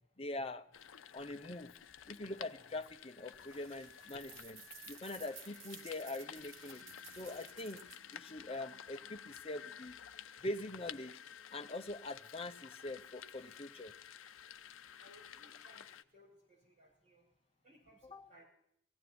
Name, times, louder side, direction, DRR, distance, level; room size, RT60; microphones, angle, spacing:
voice 1, 0.2-0.7 1.1-1.7 2.1-6.8 7.1-7.8 8.1-10.0 10.4-11.1 11.5-13.9 18.0-18.3, left 2 dB, 30° left, 6 dB, 0.7 m, -43 dB
sound 1, 0.7-16.0, left 9 dB, 80° left, 0.6 m, -53 dB
sound 2, 3.3-8.1, right 5 dB, 80° right, 1.6 m, -55 dB
voice 2, 15.0-15.8 16.1-17.2 17.6-18.0 18.3-18.4, equal, 40° right, -5 dB, 5.9 m, -63 dB
18.0 x 15.5 x 4.3 m, 0.68 s
head